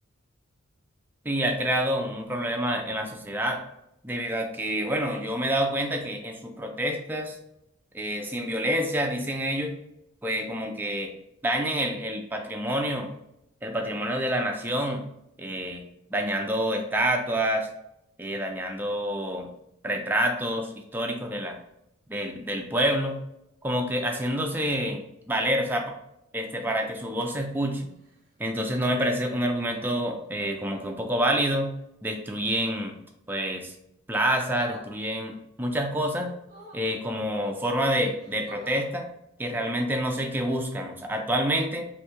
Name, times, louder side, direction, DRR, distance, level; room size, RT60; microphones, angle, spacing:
voice 1, 1.2-3.6 4.0-7.4 7.9-9.7 10.2-11.1 11.4-13.1 13.6-15.0 15.4-15.8 16.1-17.7 18.2-19.5 19.8-21.6 22.1-23.2 23.6-25.9 26.3-27.9 28.4-31.7 32.0-33.0 33.3-33.7 34.1-36.3 36.7-39.1 39.4-41.9, equal, 10° right, 3 dB, 0.3 m, -27 dB
sound 1, 27.9-28.4 29.6-30.0 32.2-32.6 34.4-34.9 36.4-36.9 37.7-37.8 38.2-38.9 40.6-40.8, right 1 dB, 40° right, 1.1 m, -47 dB
3.4 x 2.6 x 2.9 m, 0.82 s
head